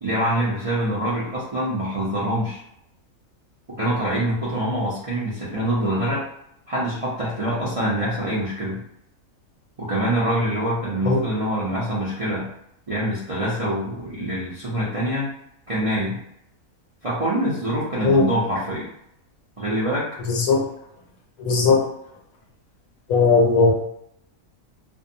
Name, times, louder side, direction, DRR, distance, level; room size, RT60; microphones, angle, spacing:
voice 1, 0.0-2.6 3.8-6.2 6.7-8.8 9.8-12.5 12.9-15.3 15.7-16.2 17.0-18.9 19.6-20.1, right 1 dB, 45° right, -9 dB, 0.4 m, -25 dB
voice 2, 20.3-20.6 21.4-21.8 23.1-23.7, left 4 dB, 75° left, -1 dB, 1.0 m, -17 dB
2.5 x 2.1 x 2.6 m, 0.75 s
omnidirectional pair, 1.5 m